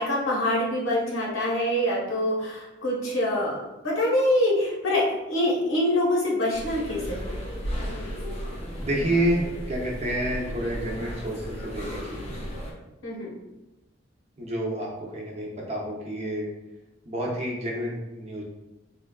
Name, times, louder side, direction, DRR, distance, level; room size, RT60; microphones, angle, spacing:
voice 1, 0.0-7.4 13.0-13.4, left 1 dB, 90° left, -4 dB, 1.0 m, -25 dB
sound 1, 6.5-12.7, equal, 35° left, 0.6 m, -34 dB
voice 2, 8.8-12.3 14.4-16.5 17.1-18.4, right 1 dB, 35° right, -3 dB, 0.7 m, -29 dB
3.8 x 2.3 x 2.3 m, 0.98 s
head